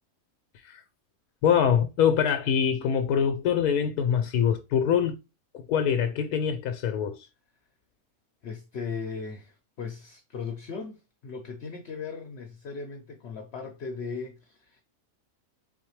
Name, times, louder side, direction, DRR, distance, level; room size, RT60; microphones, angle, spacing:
voice 1, 1.4-5.2 5.5-7.3, left 8 dB, 85° left, 1.1 m, -24 dB
voice 2, 8.4-14.8, left 5 dB, 55° left, 0.9 m, -38 dB
4.3 x 4.0 x 3.0 m
omnidirectional pair, 1.6 m